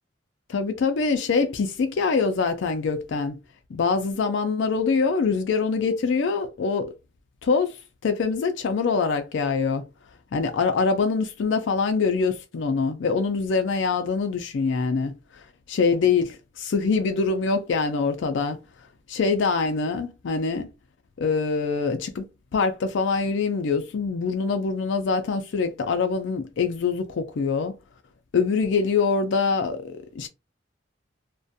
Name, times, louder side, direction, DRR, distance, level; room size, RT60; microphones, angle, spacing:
voice 1, 0.5-3.4 3.7-6.9 7.4-7.7 8.0-9.8 10.3-15.1 15.7-18.6 19.1-20.7 21.2-27.7 28.3-30.3, left 4 dB, 70° left, 0.4 m, -24 dB
2.4 x 2.1 x 2.6 m
head